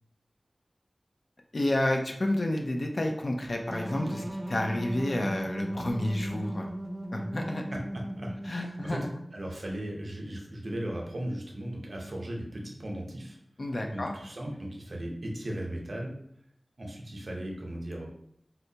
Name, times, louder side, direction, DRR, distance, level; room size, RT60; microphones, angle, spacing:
voice 1, 1.5-6.7 7.1-7.6 8.5-9.1 13.6-14.1, left 1 dB, 65° left, 2 dB, 0.5 m, -30 dB
sound 1, 3.7-9.3, right 1 dB, 10° right, 0.5 m, -37 dB
voice 2, 8.1-9.0 9.3-13.4 13.9-16.1 16.8-18.1, right 1 dB, 75° right, 0 dB, 0.7 m, -37 dB
4.1 x 2.2 x 2.7 m, 0.73 s
wide cardioid pair, 50°, 0 cm